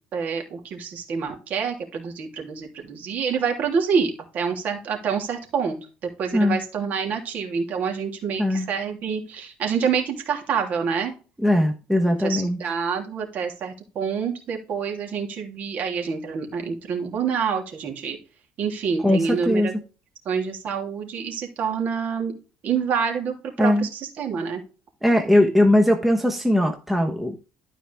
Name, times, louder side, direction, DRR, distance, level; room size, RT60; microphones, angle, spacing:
voice 1, 0.1-5.8 6.2-11.1 12.2-18.2 18.6-19.7 20.2-22.3 22.6-24.6, right 6 dB, 50° right, 2 dB, 3.0 m, -27 dB
voice 2, 11.4-12.6 19.0-19.7 23.6-23.9 25.0-27.4, left 1 dB, 5° right, 4 dB, 1.1 m, -20 dB
13.0 x 4.9 x 3.5 m, 0.35 s
cardioid pair, 125°, 4 cm